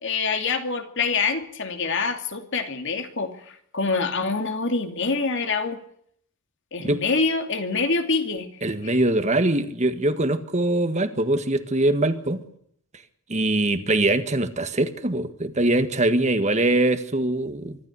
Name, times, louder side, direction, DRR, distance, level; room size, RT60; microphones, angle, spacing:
voice 1, 0.0-5.8 6.7-8.5 8.8-9.0, left 4 dB, 60° left, 7 dB, 2.7 m, -25 dB
voice 2, 8.6-12.4 13.3-17.8, right 2 dB, 30° right, 9 dB, 1.7 m, -22 dB
24.5 x 13.0 x 9.7 m, 0.67 s
head